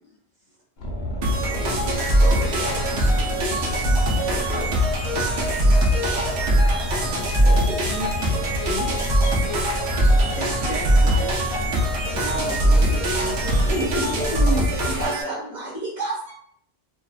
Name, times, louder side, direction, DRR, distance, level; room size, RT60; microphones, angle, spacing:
Boat Water vehicle, 0.8-15.1, left 1 dB, 80° left, 0.9 m, -29 dB
sound 1, 1.2-15.2, right 1 dB, 90° right, 0.9 m, -22 dB
voice 1, 1.4-5.7, left 1 dB, 55° left, -5 dB, 0.6 m, -36 dB
voice 2, 6.7-9.7 13.7-16.3, right 1 dB, 15° right, -9 dB, 0.8 m, -31 dB
voice 3, 10.2-11.3 12.1-13.9, right 2 dB, 45° right, -6 dB, 0.9 m, -34 dB
2.5 x 2.2 x 2.3 m, 0.66 s
omnidirectional pair, 1.1 m